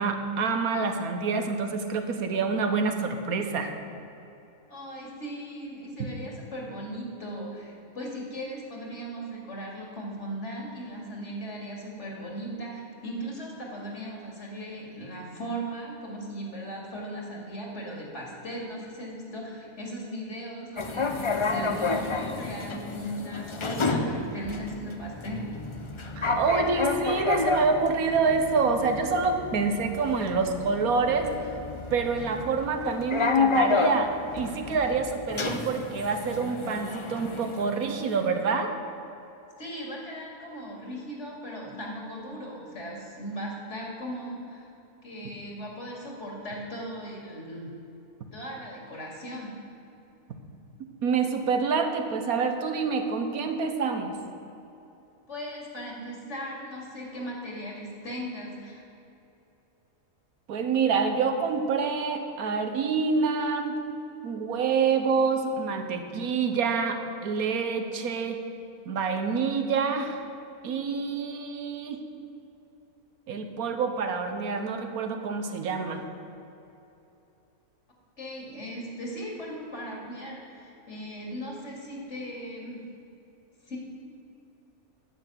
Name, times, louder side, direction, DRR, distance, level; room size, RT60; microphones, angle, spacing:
voice 1, 0.0-3.7 6.0-6.1 26.2-31.3 31.9-38.7 51.0-54.2 60.5-63.8 64.2-68.4 68.9-70.2 70.6-72.0 73.3-76.0, right 5 dB, 90° right, 6 dB, 1.5 m, -27 dB
voice 2, 4.7-25.5 39.6-44.7 45.0-47.7 48.3-49.5 55.3-58.8 78.2-82.8 83.7-83.8, equal, 55° left, -2 dB, 2.7 m, -38 dB
sound 1, 20.8-38.3, left 3 dB, 35° left, 0.5 m, -30 dB
9.8 x 6.8 x 9.1 m, 2.9 s
omnidirectional pair, 1.5 m